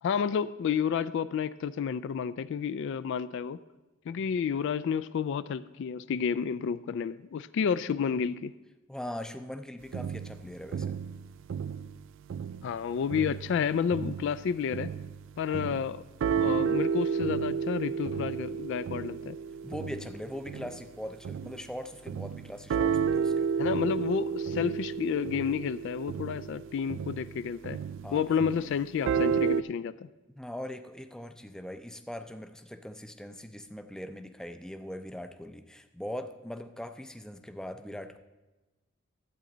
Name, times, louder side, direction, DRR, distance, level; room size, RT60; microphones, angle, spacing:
voice 1, 0.0-3.6 4.1-8.5 12.6-14.9 15.4-16.0 16.3-19.4 23.6-27.8 28.1-30.1, left 7 dB, 65° left, 15 dB, 0.3 m, -30 dB
voice 2, 8.9-11.0 19.6-23.5 28.0-28.2 30.4-38.2, left 1 dB, 5° left, 8 dB, 0.5 m, -41 dB
sound 1, 9.9-12.8 13.1-21.7 22.1-29.6, right 6 dB, 65° right, 0.3 m, -32 dB
12.0 x 8.5 x 3.9 m, 1.1 s
head